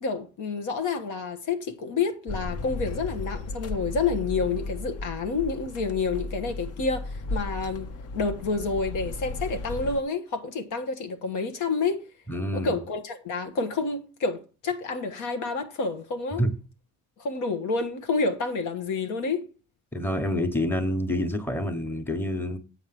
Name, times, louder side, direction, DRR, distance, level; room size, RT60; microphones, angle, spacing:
voice 1, 0.0-12.0 12.5-16.4 17.2-19.5, left 4 dB, 85° left, 1.3 m, -29 dB
sound 1, 2.3-10.0, left 2 dB, 55° left, 0.8 m, -35 dB
voice 2, 12.3-12.8 16.4-16.5 19.9-22.6, left 1 dB, 5° left, 1.1 m, -27 dB
7.8 x 4.8 x 5.9 m
cardioid pair, 90°, 30 cm